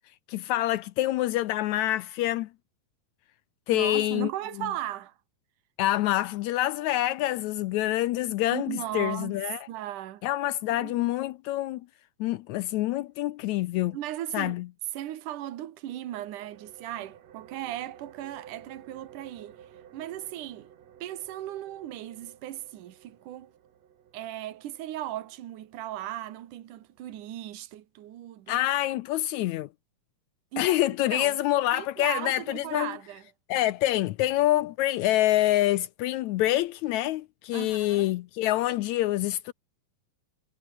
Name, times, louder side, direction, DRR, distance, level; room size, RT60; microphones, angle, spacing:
voice 1, 0.3-2.5 3.7-4.3 5.8-9.6 10.2-11.9 12.2-14.0 14.3-14.7 28.5-29.7 30.6-33.0 33.5-39.5, left 15 dB, 80° left, 1.8 m, -26 dB
voice 2, 3.7-5.2 8.5-9.4 9.7-10.3 10.7-11.1 13.9-14.6 14.9-20.7 21.0-23.5 24.1-28.6 30.5-30.7 31.1-31.4 31.7-33.2 37.5-38.1, right 13 dB, 75° right, 2.9 m, -37 dB
sound 1, 15.9-27.3, right 9 dB, 60° right, 2.8 m, -54 dB
omnidirectional pair, 3.7 m